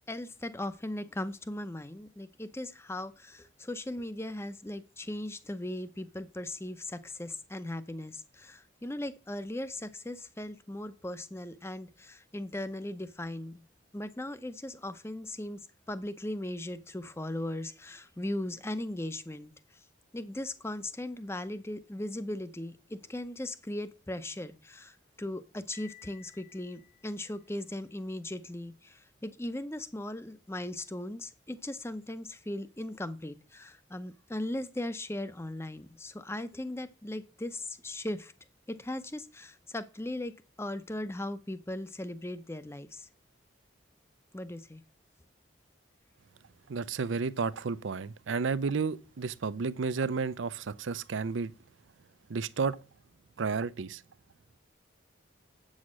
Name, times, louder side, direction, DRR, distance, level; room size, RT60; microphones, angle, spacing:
voice 1, 0.1-13.6 13.9-15.6 15.9-19.5 20.1-38.3 38.7-40.3 40.6-43.1 44.3-44.8, left 1 dB, 15° left, 0.6 m, -38 dB
Piano, 25.7-27.7, left 12 dB, 55° left, 2.4 m, -56 dB
voice 2, 46.7-51.5 52.3-52.8 53.4-54.0, right 5 dB, 80° right, 0.5 m, -32 dB
8.4 x 6.4 x 6.2 m
head